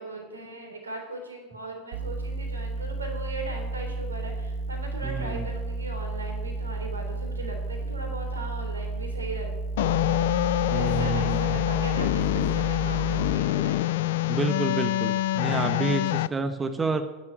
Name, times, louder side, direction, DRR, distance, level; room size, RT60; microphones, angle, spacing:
voice 1, 0.0-9.5 10.0-13.9 16.1-16.4, right 2 dB, 90° right, 3 dB, 3.5 m, -39 dB
sound 1, 1.9-13.3, right 3 dB, 65° right, 1.0 m, -32 dB
voice 2, 5.0-5.5 10.7-11.6 14.3-17.0, right 4 dB, 20° right, 8 dB, 1.3 m, -29 dB
sound 2, 9.8-16.3, left 15 dB, 70° left, 0.4 m, -25 dB
10.5 x 10.0 x 9.9 m, 1.2 s
hypercardioid pair, 80°, 0 cm